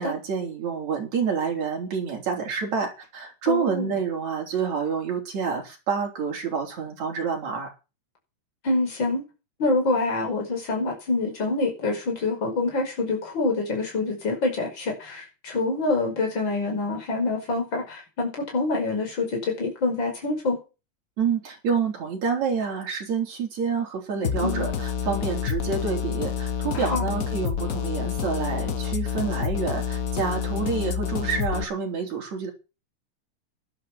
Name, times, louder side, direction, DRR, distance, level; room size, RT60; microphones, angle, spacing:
voice 1, 0.0-7.7 21.2-32.5, right 6 dB, 70° right, 0 dB, 5.1 m, -28 dB
voice 2, 3.5-3.9 8.6-9.2 9.6-20.6 24.4-24.7 26.7-27.1, left 3 dB, 40° left, 1 dB, 6.0 m, -26 dB
sound 1, 24.2-31.6, left 8 dB, 70° left, 0.8 m, -28 dB
12.5 x 11.5 x 6.0 m, 0.31 s
omnidirectional pair, 3.3 m